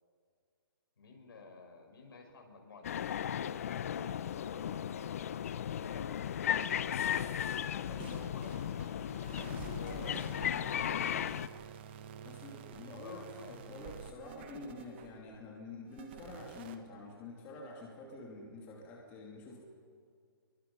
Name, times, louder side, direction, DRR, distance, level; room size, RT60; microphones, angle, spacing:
voice 1, 1.0-2.9 3.8-5.2 5.5-6.3 6.7-7.5 7.9-9.1 9.8-10.4 10.8-11.7 12.7-14.1, left 4 dB, 70° left, 2 dB, 6.0 m, -52 dB
sound 1, 2.8-11.5, left 9 dB, 40° left, 0.6 m, -36 dB
voice 2, 7.7-8.3 12.2-19.6, left 2 dB, 15° left, -2 dB, 2.8 m, -48 dB
sound 2, 7.9-15.3 15.9-16.8, right 8 dB, 25° right, 1.3 m, -49 dB
24.0 x 23.5 x 5.6 m, 2.2 s
hypercardioid pair, 165°, 13 cm